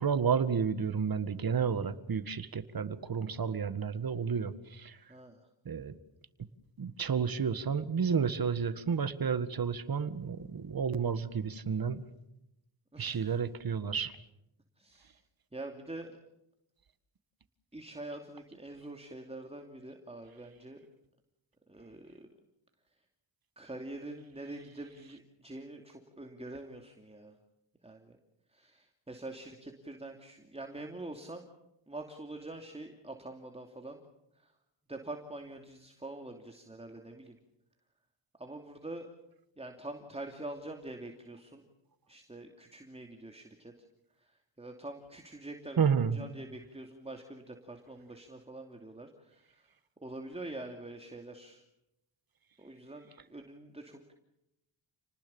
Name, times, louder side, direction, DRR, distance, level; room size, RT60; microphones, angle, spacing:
voice 1, 0.0-4.5 4.8-4.9 5.7-5.9 6.8-12.0 13.0-14.1 45.8-46.2, right 6 dB, 50° right, 12 dB, 1.9 m, -31 dB
voice 2, 5.1-5.5 12.9-13.4 14.8-15.2 15.5-16.2 17.7-20.8 21.7-22.3 23.6-27.4 27.8-28.2 28.5-31.5 31.9-34.0 34.3-34.5 34.9-37.4 38.4-39.1 39.6-41.6 42.1-43.7 44.2-49.7 50.0-51.6 52.6-54.1, right 2 dB, 15° right, 4 dB, 2.8 m, -45 dB
30.0 x 19.5 x 7.2 m, 0.85 s
cardioid pair, 85°, 45 cm